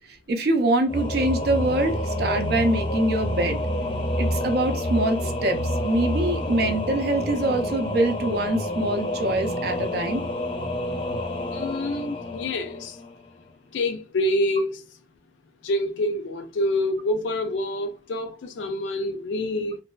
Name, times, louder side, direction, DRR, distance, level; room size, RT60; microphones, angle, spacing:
voice 1, 0.1-3.6 4.2-10.2, right 1 dB, 55° right, 0.4 m, -24 dB
Singing / Musical instrument, 0.9-13.4, left 1 dB, 30° left, 0.5 m, -28 dB
voice 2, 11.5-13.0 13.7-14.8 15.6-19.8, left 1 dB, 75° left, 0.4 m, -27 dB
2.5 x 2.3 x 2.2 m
head